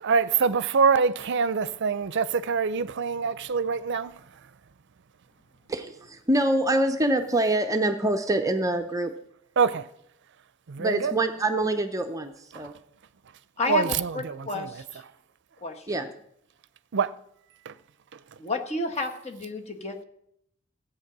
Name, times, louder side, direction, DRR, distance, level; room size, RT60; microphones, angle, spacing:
voice 1, 0.0-4.2 9.6-9.9 10.7-11.2 12.5-12.6 13.7-14.7 16.9-17.1 17.7-17.8, right 5 dB, 60° right, 0.6 m, -25 dB
voice 2, 5.7-9.1 10.8-12.7 15.9-16.1, right 1 dB, 15° right, 0.7 m, -25 dB
voice 3, 13.6-15.0 15.6-16.1 18.4-20.0, left 2 dB, 30° left, 1.4 m, -31 dB
14.5 x 8.5 x 6.0 m
head